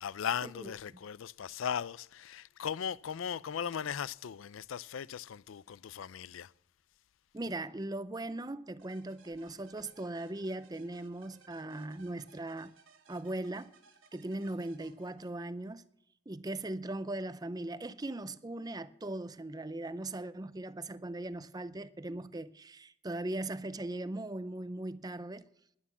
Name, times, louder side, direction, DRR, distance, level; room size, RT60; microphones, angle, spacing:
voice 1, 0.0-6.5, left 8 dB, 75° left, 0.4 m, -38 dB
voice 2, 7.3-12.7 13.1-13.7 14.1-15.8 16.3-25.5, right 2 dB, 20° right, 0.5 m, -39 dB
sound 1, 8.8-15.7, right 4 dB, 80° right, 2.5 m, -62 dB
11.0 x 11.0 x 7.2 m
head